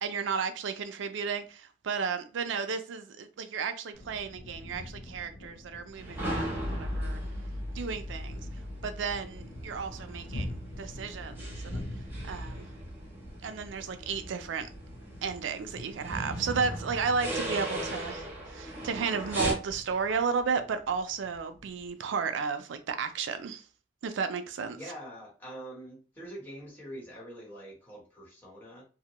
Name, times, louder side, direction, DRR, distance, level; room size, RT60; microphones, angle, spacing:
voice 1, 0.0-7.2 7.7-8.5 8.8-11.8 12.3-12.7 13.4-14.7 15.2-23.6 24.0-24.8, right 5 dB, 80° right, 0.4 m, -33 dB
sound 1, 3.9-21.9, left 1 dB, 85° left, 0.7 m, -46 dB
sound 2, 6.0-19.5, equal, 10° right, 1.0 m, -38 dB
voice 2, 24.7-28.8, right 1 dB, 10° left, 1.0 m, -44 dB
2.7 x 2.1 x 2.9 m
head